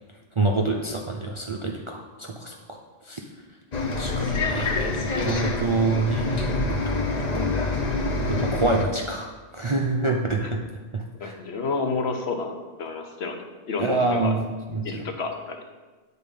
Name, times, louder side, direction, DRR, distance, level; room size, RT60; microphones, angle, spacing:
voice 1, 0.4-2.8 3.1-3.2 4.0-6.6 7.3-7.6 8.3-10.6 10.9-11.3 13.8-15.0, right 3 dB, 40° right, 0 dB, 0.5 m, -26 dB
Bus, 3.7-8.8, left 3 dB, 40° left, 0.8 m, -26 dB
voice 2, 11.2-14.3 14.8-15.6, left 4 dB, 70° left, 4 dB, 1.1 m, -30 dB
8.8 x 4.2 x 5.3 m, 1.3 s
omnidirectional pair, 1.2 m